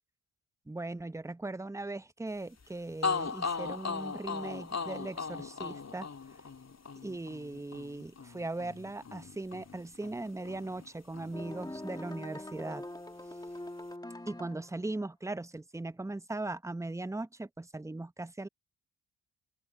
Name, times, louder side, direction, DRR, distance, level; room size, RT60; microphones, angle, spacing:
voice 1, 0.7-6.1 7.0-12.8 14.3-18.5, right 2 dB, 5° right, 0.7 m, -39 dB
sound 1, 2.6-2.7 3.0-10.9 11.1-12.3, left 5 dB, 35° left, 3.0 m, -38 dB
sound 2, 11.3-14.8, left 1 dB, 10° left, 2.0 m, -43 dB
open air
hypercardioid pair, 45°, 44 cm